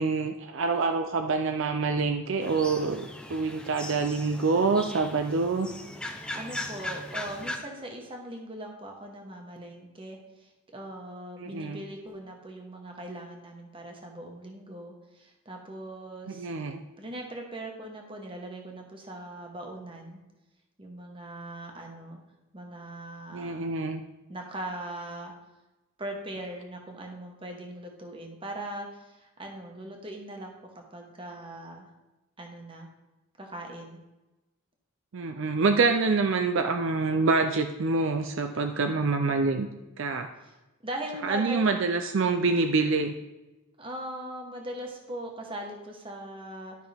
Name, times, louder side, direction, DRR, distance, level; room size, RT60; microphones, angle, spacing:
voice 1, 0.0-5.7 11.4-11.8 16.3-16.8 23.3-24.0 35.1-39.7 40.0-40.3 41.2-43.1, right 4 dB, 60° right, 6 dB, 0.5 m, -26 dB
sound 1, 2.4-7.6, left 1 dB, 5° left, 0.6 m, -39 dB
voice 2, 6.3-16.5 17.0-20.2 20.8-22.2 22.5-23.7 24.3-25.3 26.0-31.9 32.4-32.9 33.4-34.0 40.4-40.5 40.8-41.7 43.8-46.8, right 1 dB, 25° right, 1 dB, 1.3 m, -40 dB
12.0 x 5.8 x 3.5 m, 1.0 s
head